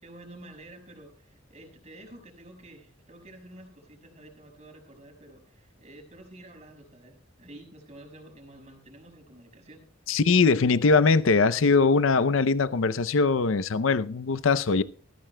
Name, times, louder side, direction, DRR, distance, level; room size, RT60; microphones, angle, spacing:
voice 1, 0.0-10.1, right 1 dB, 35° right, 5.2 m, -49 dB
voice 2, 10.1-14.8, left 4 dB, 70° left, 0.6 m, -21 dB
20.0 x 14.5 x 2.2 m
head